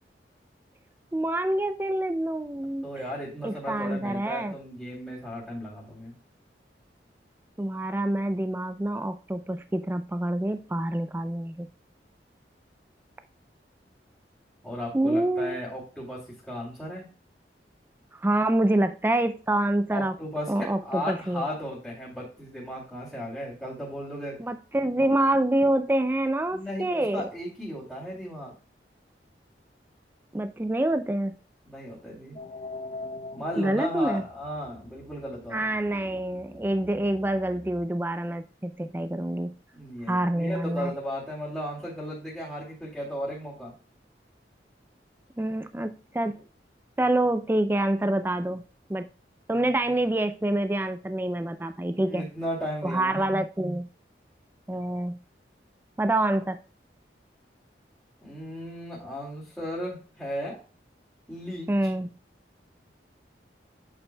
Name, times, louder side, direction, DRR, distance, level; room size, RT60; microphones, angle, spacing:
voice 1, 1.1-2.9 3.4-4.5 7.6-11.7 14.9-15.6 18.1-20.1 20.5-21.4 24.4-27.2 30.3-31.3 33.6-34.2 35.5-39.5 40.1-40.9 45.4-46.4 47.0-48.6 48.9-49.1 49.5-52.3 52.8-53.9 54.7-55.2 56.0-56.6 61.7-62.1, right 1 dB, 10° right, 9 dB, 0.3 m, -26 dB
voice 2, 2.8-6.1 14.6-17.1 19.9-24.4 25.0-25.1 26.5-28.5 31.7-32.4 33.3-35.6 39.7-43.7 51.9-53.3 58.2-60.6 61.3-61.7, equal, 5° left, -10 dB, 2.4 m, -35 dB
sound 1, 32.4-37.9, left 2 dB, 35° left, 0.7 m, -43 dB
8.6 x 7.1 x 2.2 m, 0.37 s
head